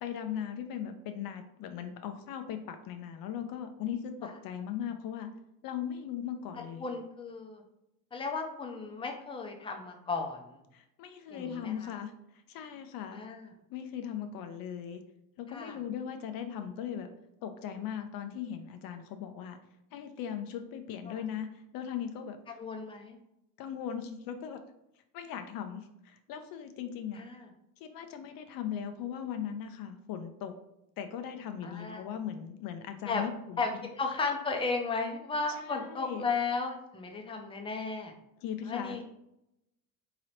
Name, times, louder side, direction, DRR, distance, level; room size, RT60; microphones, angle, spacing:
voice 1, 0.0-5.3 5.6-6.8 10.7-13.2 13.7-15.0 15.4-17.1 17.4-19.6 19.9-21.5 21.7-22.6 23.6-24.6 25.1-27.2 27.8-30.5 31.0-33.8 35.6-36.3 38.4-39.0, left 9 dB, 70° left, 7 dB, 0.5 m, -38 dB
voice 2, 6.8-7.6 8.1-10.6 11.3-11.9 13.1-13.5 15.5-15.8 21.1-21.2 22.6-23.2 27.1-27.5 31.6-32.0 33.1-33.2 33.6-38.1 38.7-39.0, left 4 dB, 15° left, 3 dB, 0.6 m, -35 dB
3.8 x 2.9 x 3.1 m, 0.84 s
cardioid pair, 110°, 36 cm